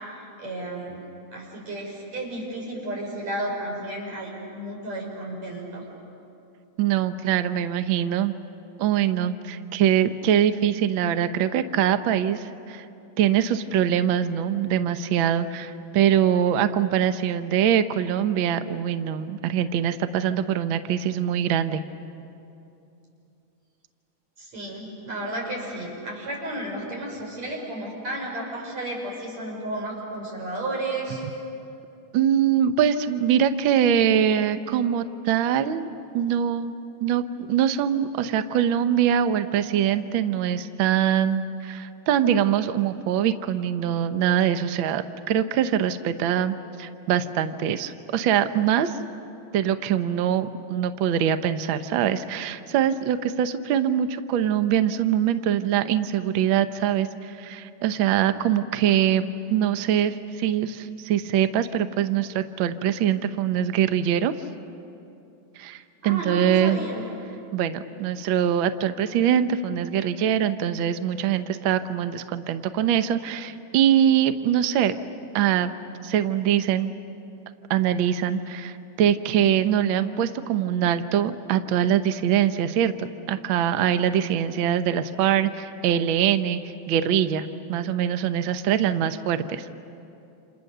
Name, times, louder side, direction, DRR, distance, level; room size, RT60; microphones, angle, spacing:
voice 1, 0.4-1.0 1.3-5.8 24.4-31.2 66.0-67.0, right 1 dB, 65° right, -1 dB, 6.6 m, -32 dB
voice 2, 6.8-8.3 8.8-12.8 13.2-21.8 32.1-35.9 36.1-36.7 37.0-49.0 49.5-64.3 65.6-66.8 67.5-75.0 75.3-75.7 76.0-76.9 77.7-89.7, right 9 dB, 85° right, 10 dB, 1.1 m, -23 dB
28.5 x 28.5 x 6.7 m, 2.7 s
omnidirectional pair, 3.4 m